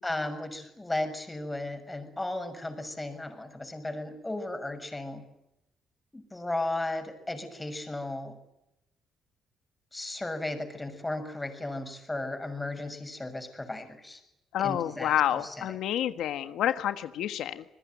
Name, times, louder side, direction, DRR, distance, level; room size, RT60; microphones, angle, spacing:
voice 1, 0.0-5.3 6.1-8.4 9.9-14.2 14.6-15.7, left 2 dB, 15° left, 7 dB, 6.7 m, -35 dB
voice 2, 14.5-17.6, left 11 dB, 80° left, 9 dB, 1.4 m, -29 dB
26.5 x 21.0 x 9.3 m, 0.86 s
cardioid pair, 90°, 0 cm